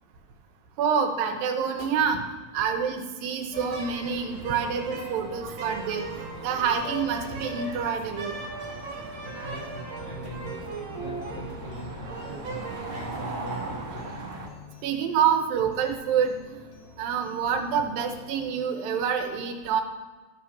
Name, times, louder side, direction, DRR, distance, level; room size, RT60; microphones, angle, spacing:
voice 1, 0.8-2.2 2.5-6.1 6.4-8.3 14.8-16.6 17.0-19.8, right 7 dB, 80° right, 4 dB, 2.5 m, -27 dB
sound 1, 3.5-14.5, right 3 dB, 60° right, 2.0 m, -37 dB
sound 2, 4.5-18.4, left 3 dB, 70° left, 2.4 m, -47 dB
voice 2, 9.2-10.6 11.0-14.1, equal, 45° left, -8 dB, 2.3 m, -40 dB
13.5 x 6.8 x 3.0 m, 1.3 s
omnidirectional pair, 4.1 m